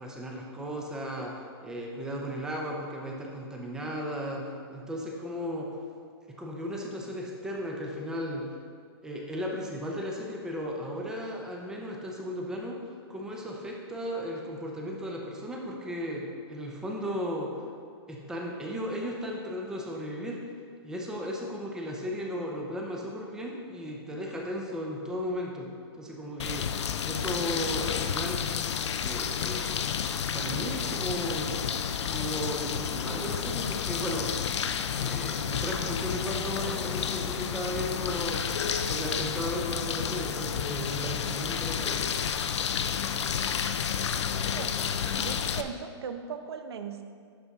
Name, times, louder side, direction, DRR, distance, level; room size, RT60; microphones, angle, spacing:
voice 1, 0.0-5.8 6.4-8.5 9.0-17.5 18.1-20.4 20.8-25.7 26.0-28.5 29.0-29.7 30.3-31.7 32.0-34.3 35.0-38.5 38.9-42.1, equal, 5° right, -1 dB, 0.5 m, -35 dB
sound 1, 26.4-45.6, left 7 dB, 90° left, 0.5 m, -31 dB
voice 2, 43.9-47.0, right 6 dB, 65° right, 8 dB, 0.6 m, -39 dB
11.0 x 4.1 x 3.5 m, 2.2 s
hypercardioid pair, 170°, 14 cm